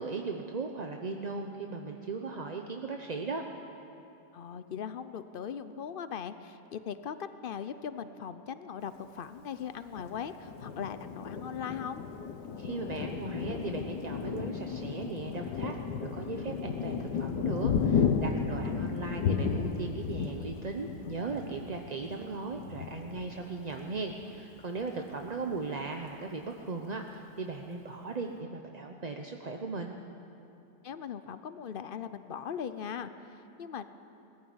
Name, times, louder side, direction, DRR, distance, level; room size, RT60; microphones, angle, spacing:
voice 1, 0.0-3.4 12.6-30.0, right 4 dB, 35° right, 3 dB, 0.7 m, -38 dB
voice 2, 4.3-12.0 30.8-33.8, left 7 dB, 65° left, 11 dB, 0.5 m, -39 dB
Thunder, 9.9-24.3 24.8-24.9 25.2-25.8, left 6 dB, 85° left, 1.6 m, -34 dB
19.5 x 14.5 x 9.6 m, 2.8 s
omnidirectional pair, 1.8 m